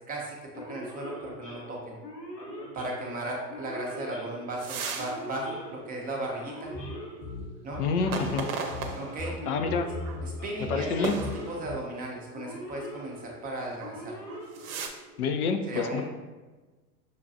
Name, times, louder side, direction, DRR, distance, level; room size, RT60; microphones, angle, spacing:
voice 1, 0.0-2.0 2.7-6.7 7.6-7.8 9.0-9.5 10.2-14.2 15.7-16.0, right 1 dB, 20° right, -1 dB, 0.5 m, -36 dB
Male speech man speaking / Siren, 0.5-15.3, equal, 90° left, 1.0 m, -43 dB
sound 1, 4.6-5.2 5.6-5.7 8.0-9.4 10.0-10.2 11.0-11.9 13.7-13.9 14.3-14.9, right 4 dB, 60° right, 0.7 m, -36 dB
sound 2, 6.7-8.4 8.7-11.7, left 2 dB, 20° left, 0.8 m, -38 dB
voice 2, 7.8-8.5 9.5-9.9 10.7-11.1 15.2-16.0, left 5 dB, 65° left, 5 dB, 0.6 m, -27 dB
6.5 x 2.2 x 2.6 m, 1.2 s
hypercardioid pair, 95°, 48 cm